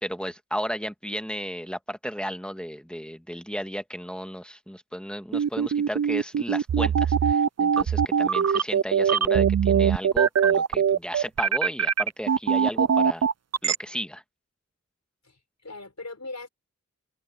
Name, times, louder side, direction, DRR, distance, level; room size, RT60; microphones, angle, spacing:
voice 1, 0.0-13.2 13.6-14.2, equal, 5° left, 1.8 m, -34 dB
sound 1, 5.3-13.8, right 7 dB, 55° right, 0.5 m, -21 dB
voice 2, 8.1-8.5 15.2-16.5, left 2 dB, 60° left, 6.3 m, -41 dB
open air
wide cardioid pair, 55°, 31 cm